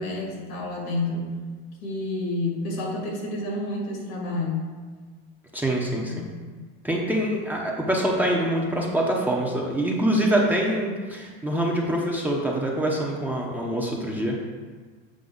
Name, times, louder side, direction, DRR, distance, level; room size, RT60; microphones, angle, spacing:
voice 1, 0.0-1.3 1.8-4.7 5.9-6.6, left 2 dB, 75° left, -1 dB, 2.1 m, -30 dB
voice 2, 5.5-6.3 6.8-14.4, right 1 dB, 5° right, -3 dB, 0.8 m, -25 dB
7.7 x 4.6 x 3.9 m, 1.5 s
supercardioid pair, 120°, 31 cm